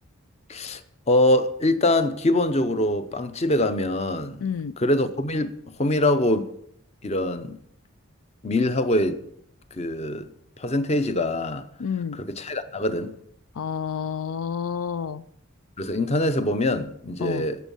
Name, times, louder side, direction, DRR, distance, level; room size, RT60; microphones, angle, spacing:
voice 1, 0.5-0.8 1.1-4.4 4.8-5.5 5.8-6.5 7.0-7.6 8.4-9.2 9.7-10.3 10.6-11.7 12.2-13.1 15.8-17.6, left 1 dB, 30° left, 0.7 m, -23 dB
voice 2, 4.4-4.7 11.8-12.2 13.5-15.2 17.2-17.5, left 7 dB, 80° left, 0.4 m, -29 dB
16.5 x 7.3 x 5.5 m
head